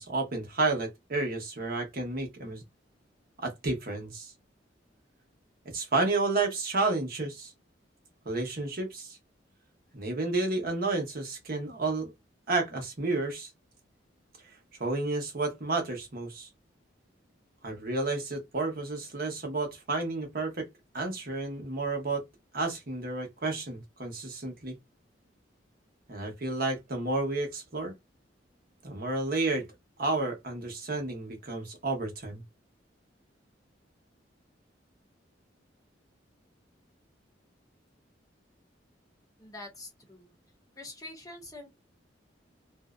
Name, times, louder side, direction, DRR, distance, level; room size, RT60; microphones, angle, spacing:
voice 1, 0.0-2.6 3.4-4.3 5.7-7.5 8.2-9.2 9.9-12.1 12.5-13.5 14.8-16.5 17.6-20.7 20.9-22.2 22.5-24.7 26.1-27.9 28.8-29.6 30.0-32.4, right 3 dB, 50° right, 0.9 m, -31 dB
voice 2, 39.4-40.3 40.8-41.7, left 2 dB, 20° left, 0.8 m, -45 dB
2.5 x 2.0 x 2.4 m
head